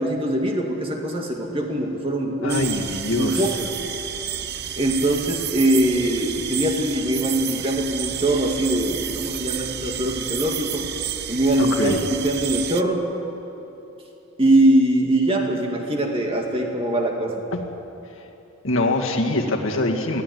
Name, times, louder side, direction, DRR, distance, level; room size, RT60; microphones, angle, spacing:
voice 1, 0.0-2.7 3.1-3.7 4.8-10.9 11.3-13.1 14.4-17.4, right 1 dB, 25° right, 1 dB, 2.3 m, -22 dB
voice 2, 2.4-3.5 11.6-12.0 17.5-17.7 18.6-20.2, left 2 dB, 70° left, 1 dB, 2.1 m, -24 dB
sound 1, 2.5-12.8, right 10 dB, 50° right, 0.7 m, -30 dB
22.5 x 15.5 x 9.7 m, 2.9 s
head